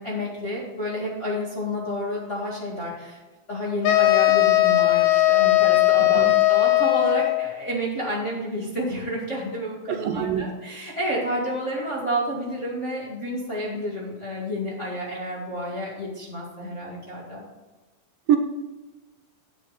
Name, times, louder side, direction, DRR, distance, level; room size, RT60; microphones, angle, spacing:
voice 1, 0.0-3.2 3.5-17.4, equal, 25° left, -5 dB, 1.7 m, -30 dB
sound 1, 3.8-7.5, left 16 dB, 85° left, 2.7 m, -18 dB
voice 2, 6.0-6.3 9.9-10.4 18.3-18.4, right 9 dB, 80° right, 5 dB, 2.3 m, -24 dB
9.3 x 8.7 x 4.1 m, 1.2 s
omnidirectional pair, 4.2 m